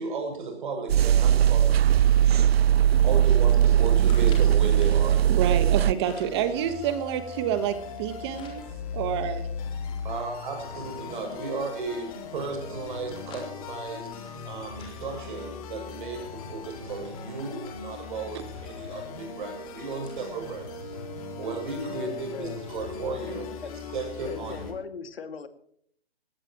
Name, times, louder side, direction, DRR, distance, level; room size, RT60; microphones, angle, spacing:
voice 1, 0.0-2.6 3.0-5.4 10.0-21.0 21.3-23.5 23.9-24.7, right 4 dB, 50° right, 6.9 m, -35 dB
sound 1, 0.9-5.9, right 10 dB, 70° right, 0.5 m, -19 dB
sound 2, 2.9-5.0 5.7-6.4 6.9-8.6 9.1-9.2 9.4-11.5 12.0-15.8 16.2-16.4 16.7-20.3 20.7-20.8 21.6-21.7, left 5 dB, 15° left, 4.0 m, -53 dB
voice 2, 5.3-8.6 8.9-9.5, right 9 dB, 25° right, 1.3 m, -28 dB
sound 3, 5.8-24.7, left 5 dB, 35° left, 3.1 m, -39 dB
voice 3, 22.0-22.6 23.2-23.4 23.6-23.7 24.2-25.5, left 6 dB, 65° left, 2.4 m, -39 dB
20.5 x 17.0 x 3.0 m
hypercardioid pair, 150°, 32 cm